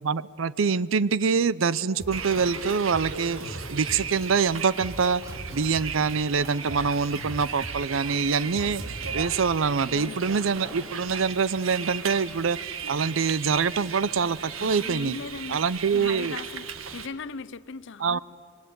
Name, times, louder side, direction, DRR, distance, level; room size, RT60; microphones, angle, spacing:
voice 1, 0.0-5.2 5.5-15.2 15.5-16.4 18.0-18.2, right 5 dB, 70° right, 19 dB, 0.6 m, -25 dB
sound 1, 2.0-2.4 2.7-4.3 4.6-6.1 6.4-9.5, right 1 dB, 50° right, 2.6 m, -40 dB
Bus, 2.1-17.1, right 6 dB, 85° right, 1.5 m, -36 dB
sound 2, 5.2-6.7 8.0-9.1 9.6-11.0, equal, 15° right, 2.4 m, -49 dB
voice 2, 14.6-15.6 15.9-16.7 16.9-18.2, left 4 dB, 65° left, 17 dB, 0.7 m, -38 dB
25.5 x 22.5 x 9.3 m, 2.3 s
head